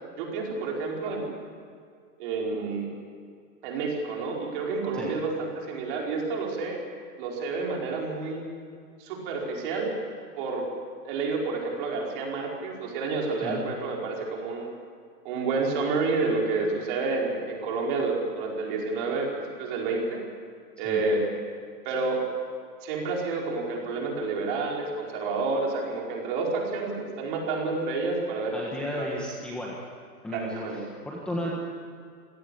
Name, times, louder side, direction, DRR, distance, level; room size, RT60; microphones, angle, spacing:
voice 1, 0.2-1.3 2.2-2.9 3.6-6.8 7.2-8.4 9.0-9.9 10.4-10.7 11.0-14.7 15.2-20.2 20.8-21.2 21.8-22.2 22.8-29.1 30.3-30.8, right 3 dB, 30° right, -1 dB, 5.0 m, -29 dB
voice 2, 28.5-29.8 30.2-31.5, left 1 dB, ahead, -3 dB, 1.4 m, -34 dB
27.5 x 17.0 x 8.5 m, 2.2 s
hypercardioid pair, 165°, 49 cm